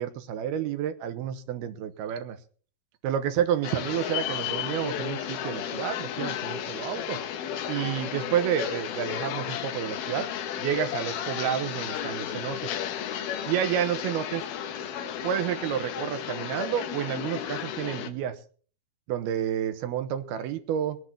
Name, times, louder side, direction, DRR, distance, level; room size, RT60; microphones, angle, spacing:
voice 1, 0.0-2.4 3.0-7.2 7.7-10.3 10.6-12.8 13.5-14.4 15.2-18.4 19.1-21.0, right 10 dB, 80° right, 10 dB, 3.0 m, -30 dB
sound 1, 3.6-18.1, left 9 dB, 75° left, 3.0 m, -33 dB
21.5 x 7.9 x 5.9 m, 0.43 s
omnidirectional pair, 4.5 m